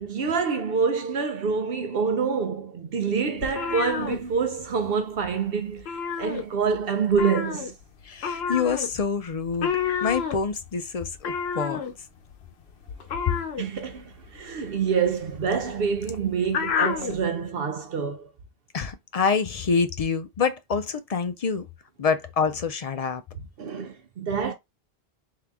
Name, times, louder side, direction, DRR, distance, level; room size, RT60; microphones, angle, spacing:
voice 1, 0.0-7.7 13.6-18.3 23.6-24.5, right 5 dB, 65° right, 0.8 m, -26 dB
sound 1, 3.4-4.9 5.2-5.4 5.7-6.8 7.1-17.2, left 6 dB, 75° left, 0.9 m, -30 dB
voice 2, 8.0-9.7 10.0-11.8 18.7-21.7 22.0-23.2, left 5 dB, 50° left, 0.5 m, -26 dB
3.7 x 2.8 x 3.4 m
omnidirectional pair, 1.1 m